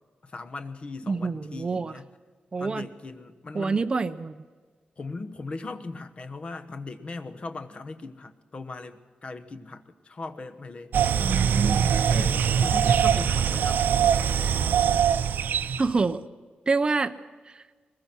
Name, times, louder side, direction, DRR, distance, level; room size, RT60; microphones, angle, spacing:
voice 1, 0.2-2.1 2.6-3.8 5.0-10.9 12.1-13.8, left 3 dB, 35° left, 9 dB, 1.2 m, -38 dB
voice 2, 1.1-1.9 2.5-2.9 3.5-4.4 11.2-11.9 15.8-16.2 16.7-17.1 17.5-17.6, right 4 dB, 30° right, 9 dB, 0.7 m, -26 dB
sound 1, 10.9-15.9, right 8 dB, 85° right, 0.6 m, -22 dB
22.5 x 21.0 x 6.2 m, 1.5 s
wide cardioid pair, 170°, 3 cm